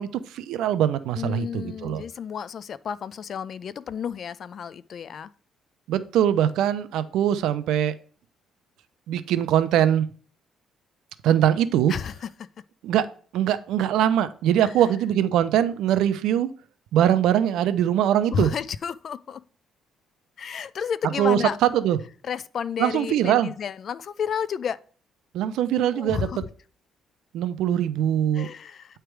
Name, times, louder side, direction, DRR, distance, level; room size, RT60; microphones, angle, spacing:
voice 1, 0.0-2.0 5.9-7.9 9.1-10.1 11.2-11.9 12.8-13.1 13.3-16.5 16.9-18.5 21.2-22.0 22.8-23.5 25.3-26.3 27.3-28.5, right 10 dB, 75° right, 0.5 m, -22 dB
voice 2, 1.2-5.3 11.9-12.3 14.6-14.7 18.3-19.4 20.4-21.6 22.2-24.8 25.9-26.4 28.3-29.0, left 7 dB, 40° left, 0.3 m, -31 dB
8.8 x 3.3 x 4.6 m
cardioid pair, 160°, 0 cm